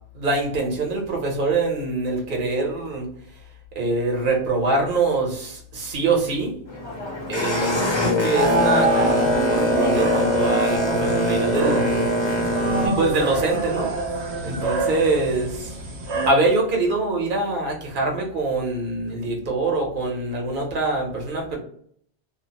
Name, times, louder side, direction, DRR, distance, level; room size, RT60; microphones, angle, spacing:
voice 1, 0.1-3.1 3.7-6.6 7.3-12.1 12.4-12.5 12.8-13.9 14.4-15.7 16.2-21.6, right 2 dB, 55° right, 1 dB, 0.9 m, -24 dB
Boat Water vehicle, 6.7-12.9, left 2 dB, 35° left, 0.5 m, -23 dB
sound 1, 8.3-16.3, right 4 dB, 85° right, 0.9 m, -26 dB
2.5 x 2.0 x 2.8 m, 0.62 s
omnidirectional pair, 1.1 m